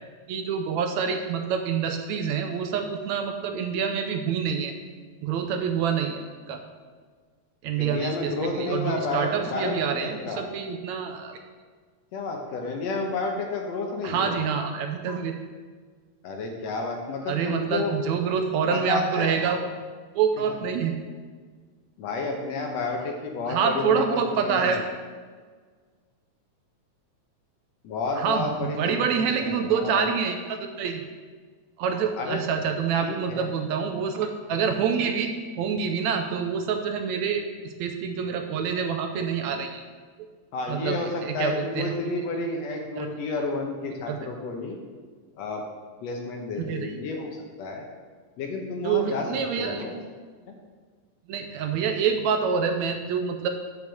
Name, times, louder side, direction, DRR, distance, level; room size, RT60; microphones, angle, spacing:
voice 1, 0.3-4.7 5.2-6.6 7.6-11.4 14.0-15.4 17.3-19.8 20.1-21.0 23.4-24.8 28.1-31.0 31.8-35.3 35.6-39.8 40.7-42.0 43.0-43.1 44.1-44.2 46.6-47.0 48.8-50.0 51.3-53.5, right 6 dB, 75° right, 5 dB, 1.9 m, -27 dB
voice 2, 7.8-10.5 12.1-14.4 16.2-18.0 18.7-19.4 22.0-24.8 27.8-30.1 32.2-32.4 33.0-33.5 40.5-44.8 45.4-45.6 46.0-47.9 48.4-49.2 49.6-50.0 50.5-50.6, left 3 dB, 65° left, 2 dB, 2.0 m, -31 dB
7.2 x 6.5 x 7.0 m, 1.5 s
omnidirectional pair, 3.4 m